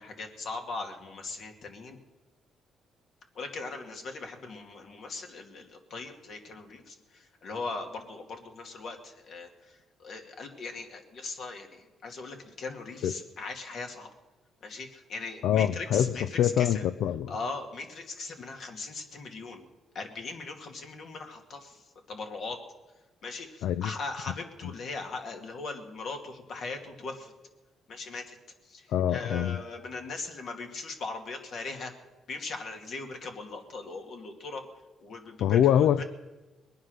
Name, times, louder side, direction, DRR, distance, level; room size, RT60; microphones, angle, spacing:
voice 1, 0.0-2.0 3.3-14.1 14.6-16.8 17.3-21.8 22.1-22.6 23.2-27.3 27.9-28.4 28.6-31.9 32.3-34.6 35.0-36.0, left 3 dB, 65° left, 4 dB, 2.4 m, -39 dB
voice 2, 15.4-17.3 23.6-23.9 28.9-29.6 35.4-36.0, left 10 dB, 80° left, 13 dB, 0.5 m, -25 dB
21.5 x 9.5 x 6.5 m, 1.2 s
cardioid pair, 90°, 0 cm